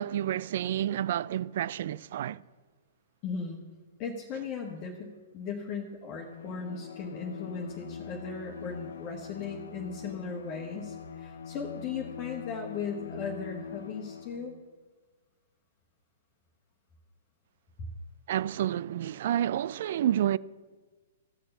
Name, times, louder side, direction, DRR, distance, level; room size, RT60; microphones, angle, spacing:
voice 1, 0.0-2.4 18.3-20.4, right 11 dB, 55° right, 0.3 m, -29 dB
voice 2, 3.2-3.7 4.0-14.6, left 5 dB, 35° left, 1.4 m, -37 dB
Bowed string instrument, 6.1-14.6, left 7 dB, 70° left, 0.8 m, -43 dB
14.5 x 6.7 x 7.1 m
hypercardioid pair, 120°, 0 cm